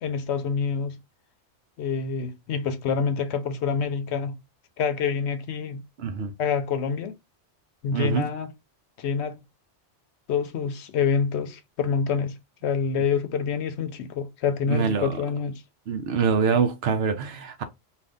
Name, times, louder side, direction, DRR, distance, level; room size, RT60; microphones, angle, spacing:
voice 1, 0.0-1.0 1.8-4.4 4.8-5.8 6.4-7.1 7.8-8.5 9.0-9.4 10.3-12.4 12.6-15.6, left 6 dB, 70° left, 0.8 m, -27 dB
voice 2, 6.0-6.3 7.9-8.3 14.7-15.1 15.9-17.6, right 6 dB, 65° right, 0.8 m, -24 dB
2.6 x 2.4 x 3.4 m
omnidirectional pair, 1.2 m